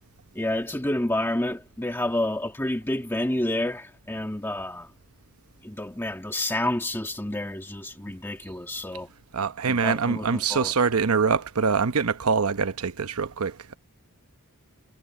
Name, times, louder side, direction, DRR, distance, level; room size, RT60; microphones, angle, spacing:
voice 1, 0.4-4.9 5.6-9.1 9.7-10.7, left 1 dB, 10° left, 1.7 m, -29 dB
voice 2, 9.3-13.8, right 5 dB, 75° right, 0.9 m, -24 dB
head